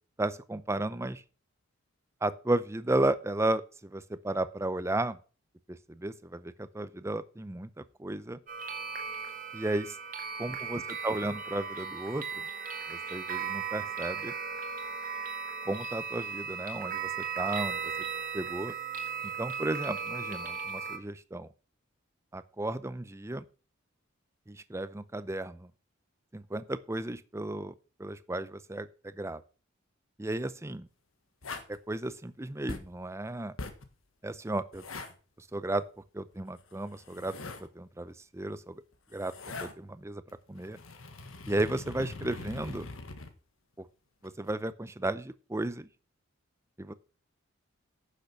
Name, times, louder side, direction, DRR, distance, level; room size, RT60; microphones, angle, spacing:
voice 1, 0.2-1.2 2.2-5.2 5.7-8.4 9.5-10.0 10.4-12.5 12.9-14.3 15.7-17.9 18.3-18.7 19.4-21.5 22.3-23.4 24.5-25.7 26.3-27.7 28.0-29.4 30.2-30.9 31.7-33.5 34.2-34.8 35.4-35.8 36.1-38.8 39.1-39.3 39.6-40.2 40.5-40.8 41.5-42.9 43.8-43.9 44.2-45.9 46.8-46.9, right 2 dB, 15° right, 15 dB, 0.5 m, -34 dB
sound 1, 8.5-21.0, right 6 dB, 40° right, 1.7 m, -37 dB
sound 2, 31.4-31.8 32.7-33.0 33.6-33.9 34.7-35.1 36.7-37.7 38.9-39.7 40.3-43.3 44.2-44.5, left 3 dB, 80° left, 1.4 m, -42 dB
10.0 x 6.7 x 5.8 m, 0.37 s
head